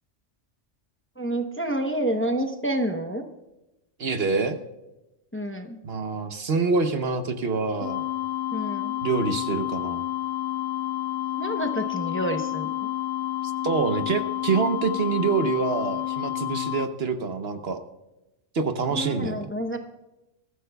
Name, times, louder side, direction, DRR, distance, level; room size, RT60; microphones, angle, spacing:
voice 1, 1.2-3.2 5.3-5.8 8.5-9.0 11.3-12.9 18.9-19.8, right 1 dB, 10° left, 5 dB, 0.7 m, -29 dB
voice 2, 4.0-4.6 5.8-8.0 9.0-10.0 13.6-17.8 18.5-19.4, right 4 dB, 60° right, 8 dB, 1.1 m, -26 dB
sound 1, 7.8-16.9, left 14 dB, 75° left, 0.9 m, -29 dB
22.5 x 14.0 x 2.3 m, 0.97 s
omnidirectional pair, 1.2 m